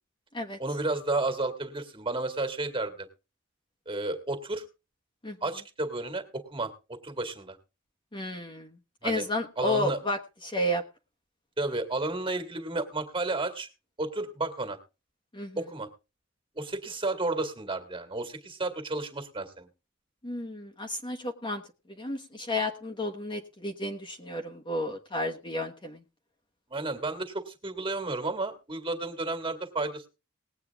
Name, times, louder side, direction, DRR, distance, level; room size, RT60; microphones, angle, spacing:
voice 1, 0.6-3.1 3.9-4.6 5.4-7.6 9.0-9.3 9.6-10.0 11.6-13.7 14.0-14.8 15.6-15.9 16.6-19.7 26.7-30.1, right 2 dB, 25° right, 7 dB, 2.1 m, -32 dB
voice 2, 8.1-8.7 9.0-10.8 15.3-15.6 20.2-21.6 21.9-26.0, left 1 dB, 25° left, 3 dB, 1.2 m, -32 dB
19.5 x 8.6 x 3.5 m, 0.30 s
head